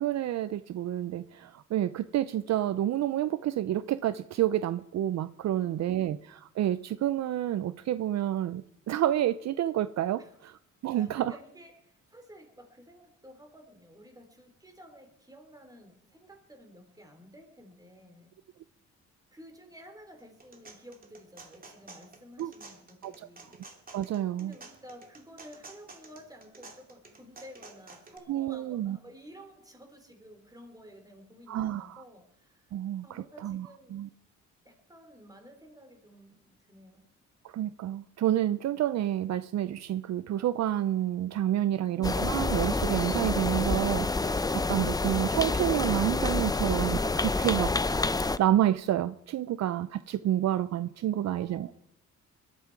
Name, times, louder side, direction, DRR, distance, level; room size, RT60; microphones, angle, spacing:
voice 1, 0.0-10.6 10.8-11.3 22.4-22.5 23.0-23.1 23.9-24.5 28.3-29.0 31.5-32.0 32.7-34.1 37.4-51.7, right 12 dB, 60° right, 0.6 m, -29 dB
voice 2, 5.5-6.2 10.2-10.4 10.9-18.4 19.3-23.6 24.4-32.7 33.0-34.0 34.6-37.1 51.2-51.7, equal, 10° right, 3.7 m, -52 dB
sound 1, 20.2-28.2, right 3 dB, 30° right, 2.9 m, -51 dB
sound 2, 42.0-48.4, left 3 dB, 10° left, 0.6 m, -28 dB
21.0 x 13.0 x 4.8 m
cardioid pair, 90°, 30 cm